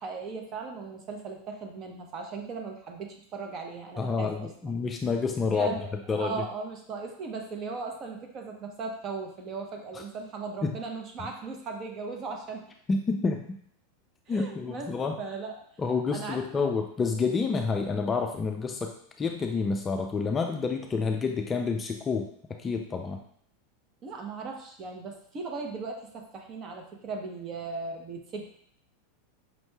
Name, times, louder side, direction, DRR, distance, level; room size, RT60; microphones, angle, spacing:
voice 1, 0.0-4.7 5.5-12.6 14.3-15.6 16.1-16.7 24.0-28.4, right 4 dB, 35° right, 2 dB, 0.8 m, -38 dB
voice 2, 4.0-5.7 6.1-6.3 10.6-10.8 12.9-13.6 14.3-15.2 15.8-23.2, left 4 dB, 20° left, 3 dB, 0.4 m, -29 dB
5.3 x 3.0 x 2.3 m, 0.64 s
supercardioid pair, 135°, 0 cm